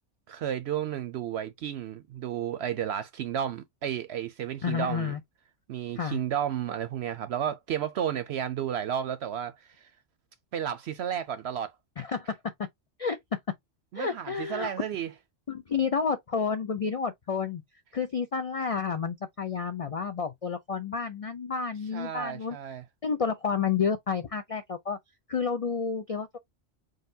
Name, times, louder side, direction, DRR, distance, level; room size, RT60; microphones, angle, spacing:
voice 1, 0.3-5.1 5.7-9.9 10.5-11.7 13.9-15.1 21.9-22.8, right 9 dB, 65° right, 0.8 m, -32 dB
voice 2, 4.6-5.2 6.0-6.2 12.0-12.3 13.0-13.2 14.0-14.7 15.5-17.6 17.9-22.6 23.0-25.0 25.3-26.4, left 6 dB, 55° left, 0.4 m, -30 dB
4.9 x 4.0 x 2.6 m
omnidirectional pair, 1.3 m